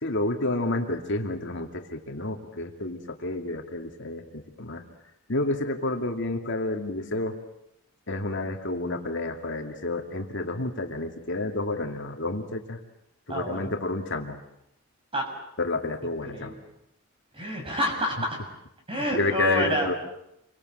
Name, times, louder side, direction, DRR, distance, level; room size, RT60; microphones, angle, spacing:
voice 1, 0.0-4.8 5.3-7.4 8.1-12.8 13.3-14.4 15.6-16.5 18.9-19.9, left 2 dB, 55° left, 3 dB, 2.5 m, -30 dB
voice 2, 13.3-13.7 15.1-15.3 16.3-16.6 17.3-18.4 18.9-19.9, equal, 25° right, 3 dB, 7.1 m, -28 dB
29.0 x 25.0 x 8.0 m, 0.81 s
head